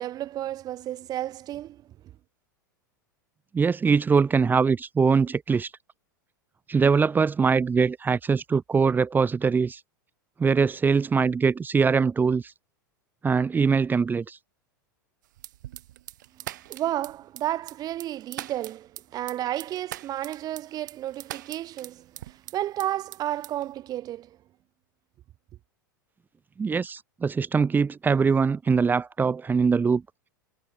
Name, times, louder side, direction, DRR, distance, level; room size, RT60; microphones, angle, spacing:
voice 1, 0.0-1.8 16.4-24.4, right 13 dB, 35° right, 3.5 m, -32 dB
voice 2, 3.5-5.7 6.7-9.8 10.4-12.5 13.2-14.4 26.6-30.0, right 5 dB, 15° right, 1.4 m, -22 dB
sound 1, 15.4-22.9 23.1-23.7, right 14 dB, 65° right, 3.0 m, -41 dB
figure-of-eight pair, 90°, 11 cm